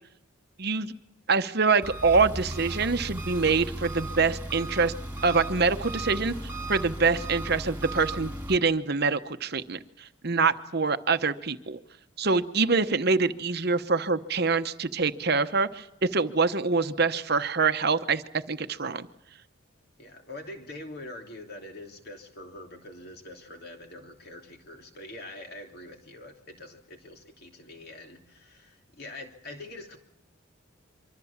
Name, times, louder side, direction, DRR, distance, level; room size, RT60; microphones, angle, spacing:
voice 1, 0.6-0.9 1.3-4.9 5.2-6.3 6.7-11.8 12.2-18.2 18.5-19.1, right 4 dB, 50° right, 10 dB, 1.0 m, -25 dB
Engine, 1.8-8.6, right 1 dB, 10° right, 2.7 m, -36 dB
voice 2, 20.0-30.0, left 1 dB, 50° left, 3 dB, 3.0 m, -44 dB
25.0 x 25.0 x 7.3 m, 0.80 s
head